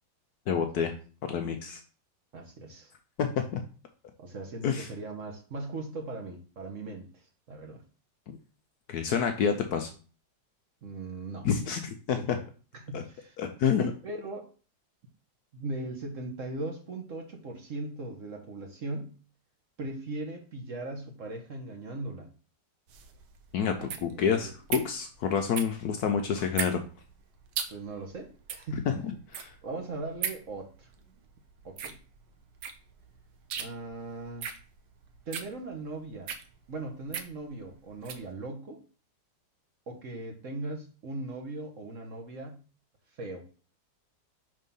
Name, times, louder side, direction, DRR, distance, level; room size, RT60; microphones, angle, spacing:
voice 1, 0.5-0.9 1.2-1.8 3.2-3.6 4.6-4.9 8.9-9.9 11.4-12.4 12.9-13.0 13.4-13.9 23.5-26.8 28.9-29.5, left 7 dB, 70° left, 6 dB, 1.0 m, -28 dB
voice 2, 2.3-2.9 4.2-7.8 10.8-11.5 12.1-12.4 12.7-13.4 14.0-14.5 15.5-19.1 19.8-22.3 23.8-24.5 27.7-28.9 29.6-30.9 31.6-32.0 33.6-34.5 35.3-36.3 36.7-38.8 39.9-42.6 43.1-43.4, right 2 dB, 50° right, 4 dB, 1.1 m, -39 dB
sound 1, 22.9-38.3, right 7 dB, 70° right, 1.3 m, -39 dB
5.3 x 3.5 x 5.4 m, 0.38 s
omnidirectional pair, 2.0 m